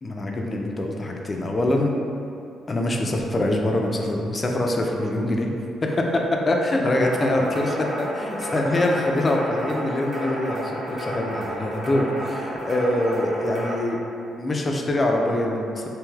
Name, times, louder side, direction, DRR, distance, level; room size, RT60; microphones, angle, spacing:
voice 1, 0.0-2.0 2.7-5.5 6.5-14.0 14.4-15.9, left 1 dB, 30° left, 1 dB, 0.3 m, -24 dB
sound 1, 6.9-13.8, equal, 60° right, 0.7 m, -31 dB
3.1 x 2.7 x 2.3 m, 2.6 s
cardioid pair, 90°, 0 cm